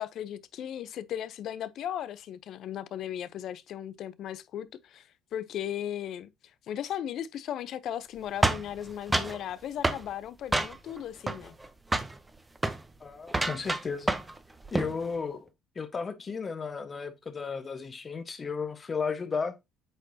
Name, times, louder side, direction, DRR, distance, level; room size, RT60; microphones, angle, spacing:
voice 1, 0.0-6.3 6.7-11.5, left 10 dB, 65° left, 0.7 m, -36 dB
sound 1, 8.4-9.4 9.8-10.1 10.5-11.0 11.3-11.7 11.9-12.2 12.6-12.8 13.3-14.4 14.6-15.0, right 2 dB, 15° right, 0.7 m, -28 dB
voice 2, 13.0-14.1 14.7-15.5 15.7-19.6, left 5 dB, 35° left, 1.3 m, -34 dB
7.9 x 4.4 x 2.7 m
cardioid pair, 95°, 0 cm